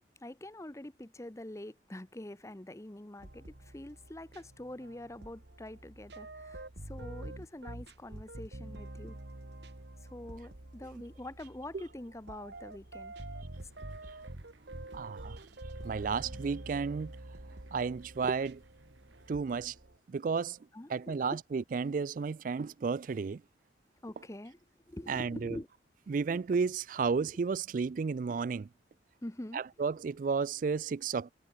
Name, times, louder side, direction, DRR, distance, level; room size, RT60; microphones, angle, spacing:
voice 1, 0.2-9.2 10.0-13.1 15.7-16.4 20.7-21.4 24.0-24.6 24.9-25.7 26.1-26.2 29.2-29.6, left 1 dB, 15° left, 0.7 m, -45 dB
sound 1, 3.2-20.0, right 1 dB, 65° right, 1.9 m, -47 dB
sound 2, 13.5-19.4, right 2 dB, 85° right, 3.1 m, -63 dB
voice 2, 14.9-15.5 15.8-17.1 17.7-18.6 19.3-19.8 20.1-20.6 20.9-23.4 25.1-25.6 26.1-28.7 29.5-31.3, right 5 dB, 45° right, 0.3 m, -32 dB
head